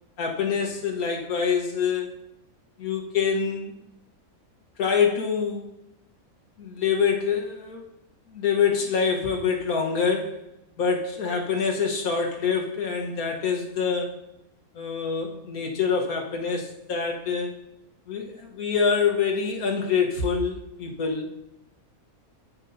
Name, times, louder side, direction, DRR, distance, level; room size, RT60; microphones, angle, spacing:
voice 1, 0.2-2.1 2.8-3.7 4.8-5.7 6.6-7.8 8.3-10.4 10.8-14.1 14.7-17.5 18.1-21.3, left 6 dB, 90° left, 1 dB, 1.8 m, -25 dB
9.8 x 8.9 x 2.7 m, 0.86 s
omnidirectional pair, 1.5 m